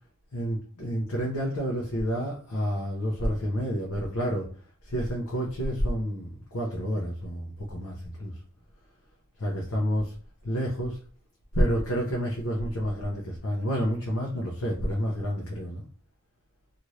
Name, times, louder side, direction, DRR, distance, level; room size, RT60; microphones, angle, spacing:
voice 1, 0.3-4.5 4.8-8.4 9.4-10.1 10.4-11.0 11.5-15.8, equal, 85° left, -2 dB, 0.7 m, -29 dB
2.7 x 2.5 x 3.1 m, 0.42 s
head